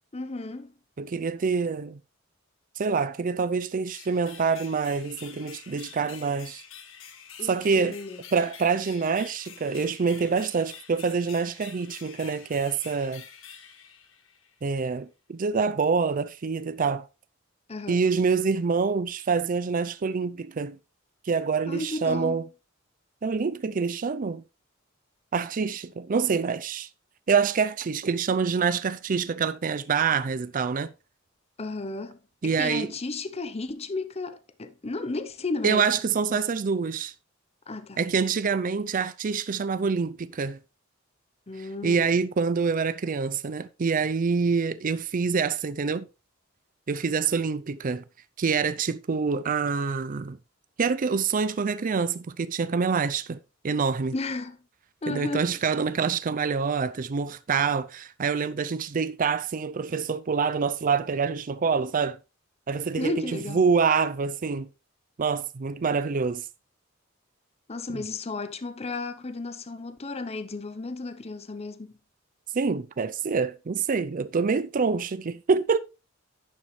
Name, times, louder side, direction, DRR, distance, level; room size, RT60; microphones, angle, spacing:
voice 1, 0.1-0.7 7.4-8.2 17.7-18.0 21.7-22.5 31.6-35.9 36.3-36.4 37.7-38.0 41.5-42.0 54.1-54.6 55.0-55.5 63.0-63.6 67.7-72.0, left 3 dB, 30° left, 0.7 m, -34 dB
voice 2, 1.0-2.0 2.8-6.6 7.4-8.0 8.3-13.2 14.6-17.1 17.9-20.8 21.3-22.4 23.2-24.4 25.3-26.9 27.3-30.9 32.4-32.9 35.6-37.1 38.0-40.6 41.8-46.1 46.9-48.0 48.4-50.4 50.8-53.4 53.6-54.1 55.1-62.2 62.7-64.7 65.2-66.4 67.9-68.0 72.5-75.8, right 5 dB, 40° right, 0.5 m, -26 dB
sound 1, 3.9-14.6, left 8 dB, 70° left, 1.6 m, -47 dB
11.0 x 7.1 x 3.2 m
head